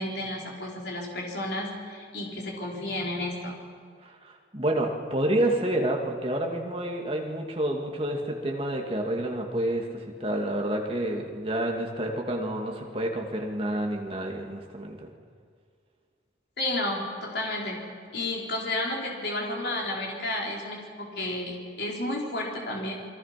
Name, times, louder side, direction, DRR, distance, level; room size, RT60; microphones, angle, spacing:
voice 1, 0.0-3.7 16.6-17.8 18.1-22.9, left 1 dB, 60° left, -2 dB, 4.5 m, -32 dB
voice 2, 4.0-9.9 10.2-15.1, right 1 dB, 30° right, 1 dB, 2.6 m, -29 dB
28.5 x 22.5 x 6.1 m, 2.1 s
head